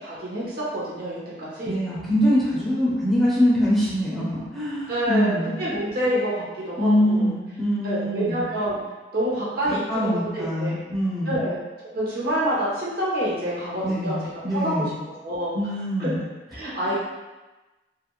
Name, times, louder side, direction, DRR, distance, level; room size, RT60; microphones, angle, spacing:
voice 1, 0.0-1.8 4.9-7.3 7.8-8.8 9.1-10.8 11.3-11.5 11.9-14.2 14.5-14.7 15.2-15.5 16.5-17.0, right 1 dB, 60° right, -7 dB, 0.8 m, -27 dB
voice 2, 1.6-5.5 6.8-8.4 9.7-11.5 13.8-14.2 14.4-14.9 15.5-16.2 16.8-16.9, equal, ahead, -9 dB, 0.6 m, -23 dB
2.4 x 2.2 x 3.0 m, 1.1 s
head